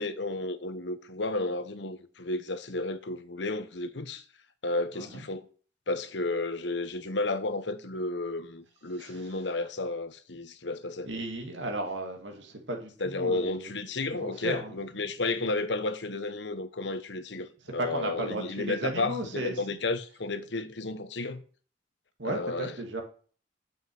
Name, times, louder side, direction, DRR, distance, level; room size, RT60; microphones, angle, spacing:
voice 1, 0.0-4.2 4.6-5.5 5.9-11.1 13.0-21.4 22.2-22.7, left 2 dB, 70° left, 1.0 m, -32 dB
voice 2, 4.9-5.3 9.0-9.3 11.0-13.7 14.1-14.7 17.8-19.5 22.2-23.0, right 2 dB, 80° right, 2.1 m, -35 dB
7.2 x 6.0 x 7.6 m
head